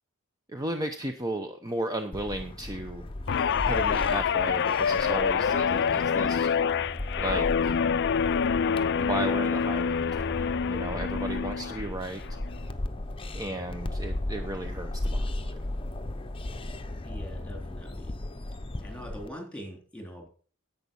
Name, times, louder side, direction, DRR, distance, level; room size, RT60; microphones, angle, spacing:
voice 1, 0.5-3.0 3.6-6.5 7.2-7.7 9.0-12.2 13.3-15.5, right 1 dB, 15° right, 6 dB, 0.8 m, -34 dB
sound 1, 2.1-19.3, left 1 dB, 25° left, 0.8 m, -36 dB
Guitar, 3.3-11.9 12.3-12.6, left 6 dB, 50° left, 0.4 m, -26 dB
voice 2, 17.0-18.1 18.8-20.3, equal, 5° left, 1 dB, 3.4 m, -42 dB
10.5 x 8.3 x 5.4 m, 0.42 s
head